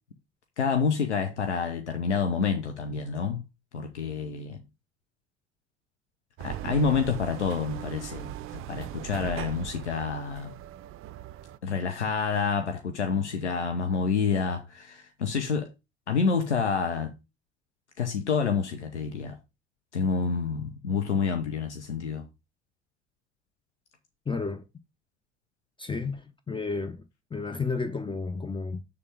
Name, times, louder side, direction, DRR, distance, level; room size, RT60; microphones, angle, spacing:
voice 1, 0.6-3.4 3.7-4.6 6.4-10.5 11.6-15.7 16.1-17.1 18.0-19.4 19.9-22.3, left 5 dB, 80° left, 1.0 m, -28 dB
sound 1, 6.4-11.6, right 13 dB, 40° right, 0.5 m, -39 dB
voice 2, 24.3-24.6 25.8-27.0 27.3-28.8, left 4 dB, 15° left, 0.8 m, -32 dB
7.0 x 6.9 x 3.5 m
figure-of-eight pair, 60°, 34 cm